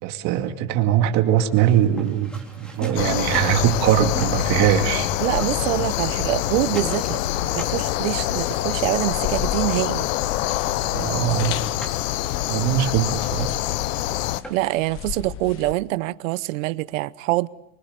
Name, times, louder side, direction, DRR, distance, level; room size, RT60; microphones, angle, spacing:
voice 1, 0.0-2.4 2.8-5.1 10.9-11.6 12.5-13.5, right 11 dB, 45° right, 2.3 m, -21 dB
sound 1, 1.3-5.0 5.3-9.0 9.7-9.8 10.2-10.3 10.6-14.9, right 1 dB, ahead, 3.6 m, -41 dB
sound 2, 3.0-14.4, left 14 dB, 80° left, 1.0 m, -25 dB
voice 2, 5.2-7.2 7.5-10.1 14.5-17.5, right 18 dB, 80° right, 0.8 m, -25 dB
sound 3, 9.1-15.7, left 10 dB, 35° left, 1.1 m, -36 dB
24.5 x 23.5 x 6.8 m
supercardioid pair, 170°, 39 cm